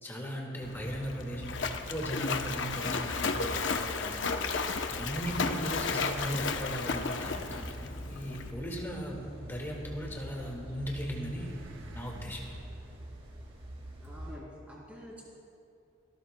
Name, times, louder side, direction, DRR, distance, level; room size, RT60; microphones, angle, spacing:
voice 1, 0.0-4.2 4.9-11.5 11.9-12.5, equal, 10° left, -2 dB, 1.8 m, -38 dB
Splash splatter, 0.6-8.5, left 4 dB, 65° left, 0.7 m, -33 dB
sound 1, 1.3-14.4, right 1 dB, 75° right, 1.1 m, -46 dB
sound 2, 4.6-14.4, equal, 30° right, 1.8 m, -50 dB
voice 2, 5.4-5.8 14.0-15.2, equal, 5° right, -5 dB, 3.2 m, -48 dB
29.0 x 13.5 x 2.2 m, 2.5 s
head